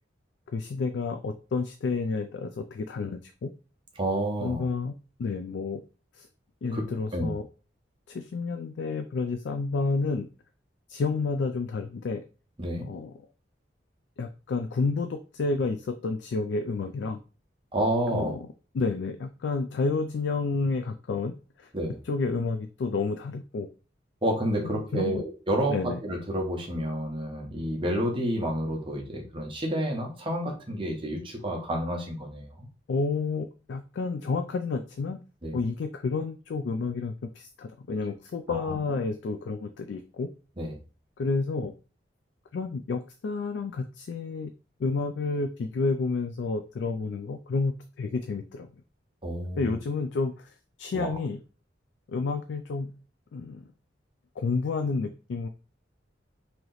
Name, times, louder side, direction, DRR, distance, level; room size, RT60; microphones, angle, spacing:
voice 1, 0.5-3.5 4.4-4.9 5.2-5.8 6.1-6.3 6.6-7.5 8.1-10.3 10.9-12.2 12.9-13.1 14.2-17.2 18.1-18.5 18.7-21.7 22.0-23.7 24.6-25.2 25.7-26.0 32.9-35.2 35.5-40.3 41.2-41.7 42.5-44.5 44.8-48.7 49.6-51.4 52.1-52.9 53.3-53.6 54.4-55.5, left 4 dB, 70° left, 8 dB, 0.3 m, -30 dB
voice 2, 4.0-4.6 6.7-6.8 7.1-7.3 12.6-12.9 17.7-18.4 21.7-21.9 24.2-32.7 35.4-35.6 38.5-38.8 40.6-40.7 49.2-49.8 50.9-51.1, right 1 dB, 30° right, 1 dB, 0.9 m, -30 dB
3.1 x 2.8 x 3.9 m, 0.35 s
head